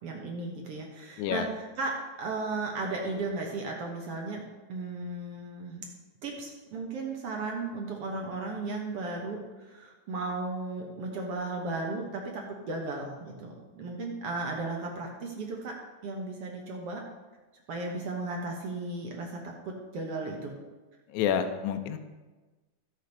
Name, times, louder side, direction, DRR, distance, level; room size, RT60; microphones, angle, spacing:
voice 1, 0.0-4.4 4.7-5.9 6.2-15.8 16.0-17.0 17.7-20.5, right 3 dB, 60° right, 0 dB, 1.6 m, -35 dB
voice 2, 1.2-1.5 21.1-22.0, left 8 dB, 75° left, 7 dB, 1.9 m, -28 dB
15.0 x 5.1 x 5.3 m, 1.2 s
omnidirectional pair, 3.9 m